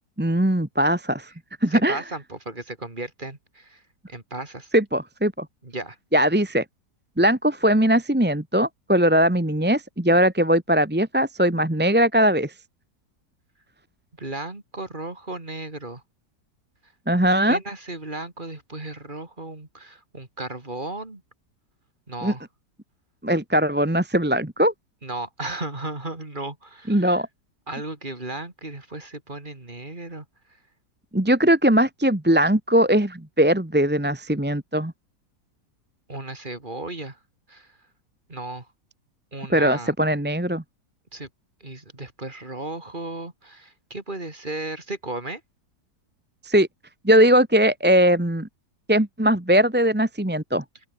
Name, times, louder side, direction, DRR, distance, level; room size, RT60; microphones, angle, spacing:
voice 1, 0.2-1.3 1.6-2.0 4.7-5.5 6.1-6.6 7.2-12.5 17.1-17.6 22.2-22.3 23.2-24.7 26.9-27.3 31.1-34.9 39.5-40.6 46.4-46.7 47.0-48.5 48.9-50.6, equal, 5° right, 1.2 m, -20 dB
voice 2, 1.7-3.8 4.1-4.7 5.6-6.0 14.2-16.0 17.5-21.2 22.1-22.4 25.0-27.2 27.7-30.2 36.1-37.2 37.5-37.7 38.3-38.6 39.3-39.9 41.1-41.3 41.6-45.4, right 2 dB, 30° right, 3.2 m, -35 dB
open air
omnidirectional pair, 1.8 m